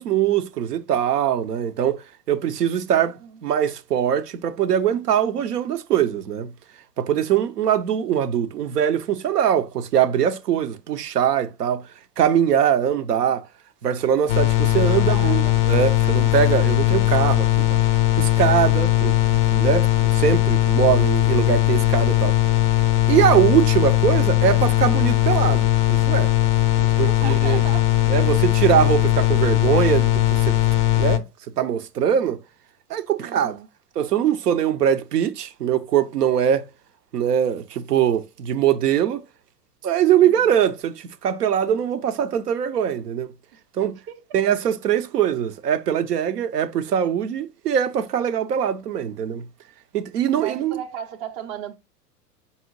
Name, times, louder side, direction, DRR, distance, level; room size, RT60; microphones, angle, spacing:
voice 1, 0.0-2.0 2.3-6.5 7.0-11.8 12.2-13.4 13.8-17.8 18.2-19.9 20.1-22.3 23.1-26.3 27.0-27.6 28.1-30.6 31.0-31.2 31.6-32.4 32.9-33.5 34.0-36.6 37.1-39.2 39.8-43.3 43.8-44.0 44.3-49.5 49.9-50.8, right 9 dB, 75° right, 0.6 m, -22 dB
voice 2, 3.0-3.4 14.8-15.6 16.8-17.3 26.8-27.9 33.2-33.7 40.2-40.5 43.5-43.6 44.1-44.2 50.4-51.8, right 9 dB, 25° right, 0.5 m, -36 dB
sound 1, 14.3-31.2, left 16 dB, 35° left, 0.4 m, -19 dB
5.3 x 2.7 x 3.0 m
figure-of-eight pair, 95°, 48 cm